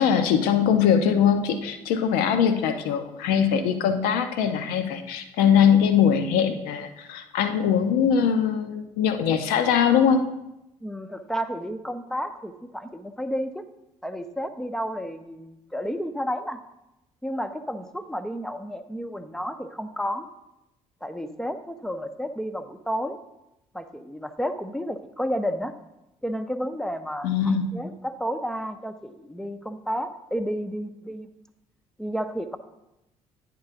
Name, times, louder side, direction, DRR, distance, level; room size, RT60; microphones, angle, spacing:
voice 1, 0.0-10.2 27.2-27.7, left 8 dB, 60° left, 9 dB, 0.8 m, -21 dB
voice 2, 10.8-13.6 14.0-16.6 17.2-20.3 21.0-23.2 23.7-25.7 26.2-31.3 32.0-32.6, equal, 5° left, 9 dB, 0.6 m, -31 dB
9.5 x 3.8 x 5.9 m, 0.90 s
figure-of-eight pair, 50°, 17 cm